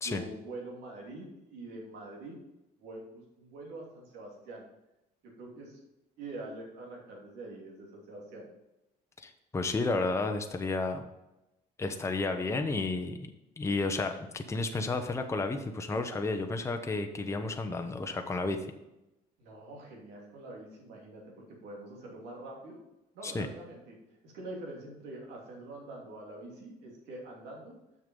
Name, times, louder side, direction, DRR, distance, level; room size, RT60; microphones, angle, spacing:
voice 1, 0.0-2.4 2.8-4.6 5.2-5.8 6.2-8.5 19.4-21.2 21.5-22.8 23.1-24.0 24.2-27.8, right 2 dB, 90° right, -1 dB, 2.8 m, -45 dB
voice 2, 9.2-11.0 11.8-13.3 13.6-18.6 23.2-23.5, left 3 dB, 15° left, 5 dB, 0.9 m, -32 dB
6.7 x 6.4 x 5.4 m, 0.93 s
cardioid pair, 110°, 17 cm